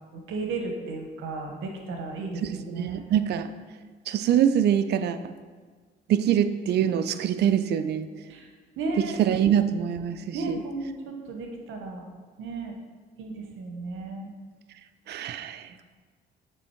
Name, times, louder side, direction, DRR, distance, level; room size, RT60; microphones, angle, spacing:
voice 1, 0.1-3.2 8.3-8.5 8.8-9.1 10.3-12.0 12.4-12.7 13.2-14.3, right 3 dB, 80° right, 2 dB, 0.8 m, -34 dB
voice 2, 2.4-3.5 4.1-5.2 6.1-8.1 9.0-10.6 15.1-15.6, right 9 dB, 60° right, 10 dB, 0.4 m, -24 dB
8.3 x 3.5 x 4.4 m, 1.5 s
cardioid pair, 90°, 20 cm